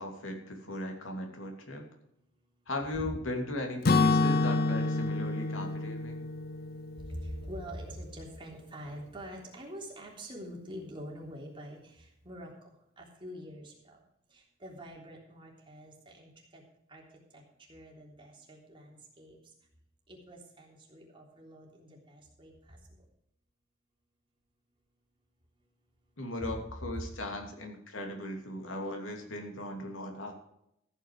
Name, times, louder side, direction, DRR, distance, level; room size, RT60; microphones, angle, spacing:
voice 1, 0.0-1.8 2.7-6.3 26.2-30.3, left 1 dB, 80° left, 2 dB, 2.8 m, -38 dB
Acoustic guitar / Strum, 3.8-7.8, left 3 dB, 50° left, 0.6 m, -28 dB
voice 2, 7.0-14.0 14.3-16.6 16.9-17.0 17.3-17.4 17.7-19.4 20.1-22.8 26.4-26.5 26.9-27.1, equal, 25° right, -2 dB, 3.4 m, -45 dB
14.5 x 9.1 x 4.9 m, 0.78 s
head